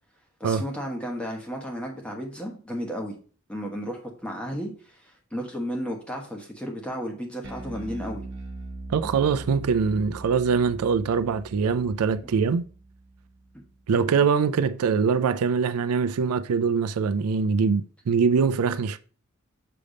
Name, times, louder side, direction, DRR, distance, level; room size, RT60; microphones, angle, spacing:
voice 1, 0.4-3.1 3.5-8.2 13.5-13.6 13.9-14.1, equal, 5° left, 1.2 m, -33 dB
Bass guitar, 7.4-13.9, right 2 dB, 55° right, 1.0 m, -41 dB
voice 2, 8.9-12.6 13.9-19.0, right 5 dB, 85° right, 0.4 m, -23 dB
6.7 x 3.4 x 5.0 m
head